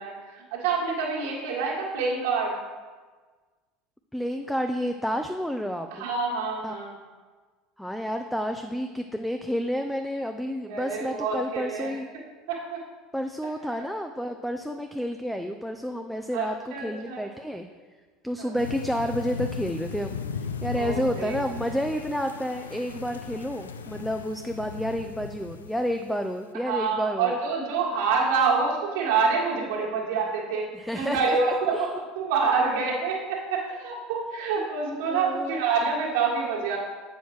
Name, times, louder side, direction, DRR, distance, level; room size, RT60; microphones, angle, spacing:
voice 1, 0.0-2.5 5.9-6.9 10.7-11.9 12.5-12.8 16.3-17.2 18.4-18.5 20.7-21.3 26.6-30.6 30.9-31.9 32.1-36.8, right 5 dB, 70° right, -4 dB, 1.7 m, -27 dB
voice 2, 4.1-6.1 6.6-6.7 7.8-12.1 13.1-17.7 18.2-27.4 30.7-31.4 31.7-32.0 34.6-35.6, equal, ahead, 6 dB, 0.4 m, -30 dB
sound 1, 18.6-26.2, left 6 dB, 85° left, 0.3 m, -37 dB
7.8 x 6.2 x 3.2 m, 1.4 s
hypercardioid pair, 75°, 0 cm